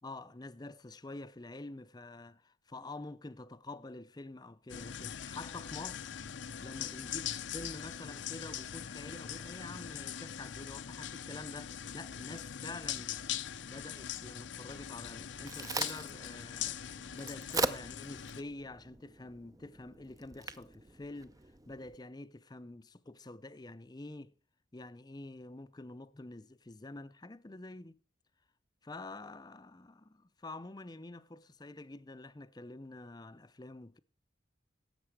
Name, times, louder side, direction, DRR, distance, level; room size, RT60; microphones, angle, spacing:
voice 1, 0.0-6.1 6.6-13.2 13.6-21.3 21.7-24.3 24.7-28.0 28.8-34.0, left 2 dB, 20° left, 0.6 m, -47 dB
sound 1, 4.7-18.4, left 9 dB, 75° left, 0.7 m, -42 dB
Crack, 15.0-22.0, right 3 dB, 20° right, 0.5 m, -41 dB
16.5 x 7.4 x 4.9 m
head